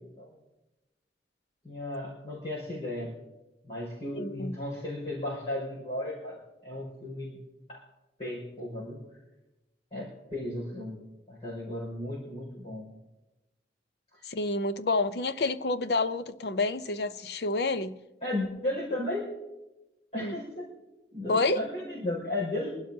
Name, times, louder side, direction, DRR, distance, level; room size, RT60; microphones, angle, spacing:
voice 1, 1.6-3.2 3.6-7.4 7.7-7.8 8.2-9.0 9.9-11.0 11.3-13.0 14.1-14.2 18.2-19.3 20.1-20.7 21.1-22.7, left 1 dB, 35° left, 5.6 m, -35 dB
voice 2, 4.1-4.5 14.2-17.9 20.2-20.3 21.3-21.6, left 3 dB, 65° left, 0.7 m, -28 dB
26.5 x 12.0 x 2.8 m
head